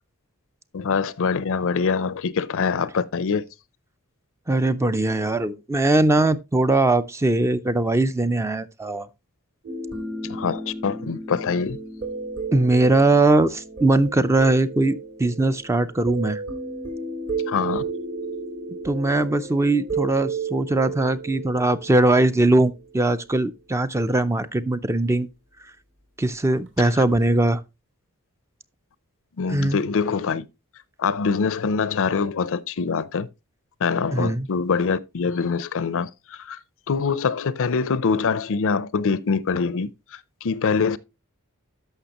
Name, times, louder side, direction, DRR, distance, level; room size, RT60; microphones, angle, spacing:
voice 1, 0.7-3.4 10.3-11.8 17.5-17.8 29.4-30.5 31.0-33.3 33.8-36.6 36.9-41.0, left 5 dB, 65° left, 0.5 m, -24 dB
voice 2, 4.5-9.1 12.5-16.4 18.8-25.3 26.2-27.6 29.5-29.8 34.1-34.5, right 2 dB, 15° right, 0.4 m, -20 dB
sound 1, 9.6-22.8 27.1-27.4, right 3 dB, 55° right, 2.8 m, -33 dB
13.0 x 5.8 x 2.9 m
head